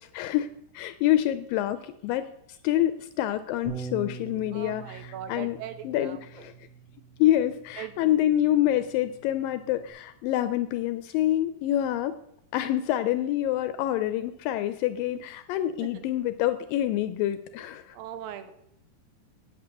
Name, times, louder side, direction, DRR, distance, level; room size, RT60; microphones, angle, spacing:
voice 1, 0.1-0.5 0.7-2.3 2.6-5.6 5.8-6.5 7.2-12.1 12.5-18.0, left 13 dB, 80° left, 11 dB, 2.1 m, -26 dB
Bass guitar, 3.6-9.9, right 5 dB, 45° right, 2.9 m, -44 dB
voice 2, 4.5-6.2 7.8-8.2 15.8-16.1 17.9-18.5, right 10 dB, 80° right, 10 dB, 2.3 m, -40 dB
8.9 x 8.3 x 6.7 m, 0.77 s
omnidirectional pair, 4.4 m